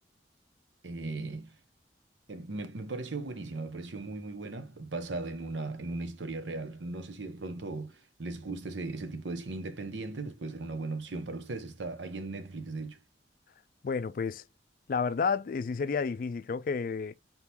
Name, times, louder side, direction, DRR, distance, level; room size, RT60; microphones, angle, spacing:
voice 1, 0.8-1.6 2.3-13.0, right 3 dB, 90° right, 0.9 m, -37 dB
voice 2, 13.8-14.4 14.9-17.1, left 5 dB, 50° left, 0.4 m, -31 dB
4.1 x 3.6 x 2.9 m
head